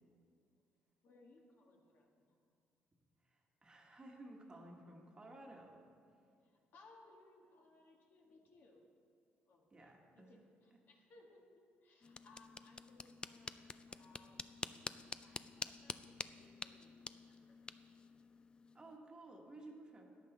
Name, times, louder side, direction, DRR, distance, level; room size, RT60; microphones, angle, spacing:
voice 1, 1.0-2.4 6.4-8.8 9.4-14.8 15.2-17.6, left 2 dB, 55° left, 1 dB, 1.7 m, -65 dB
voice 2, 3.2-5.8 9.7-10.4 18.7-20.1, right 2 dB, 20° right, 1 dB, 1.3 m, -55 dB
sound 1, 12.0-19.0, left 4 dB, 25° left, 0.3 m, -49 dB
14.0 x 9.6 x 4.1 m, 2.3 s
cardioid pair, 120°, 4 cm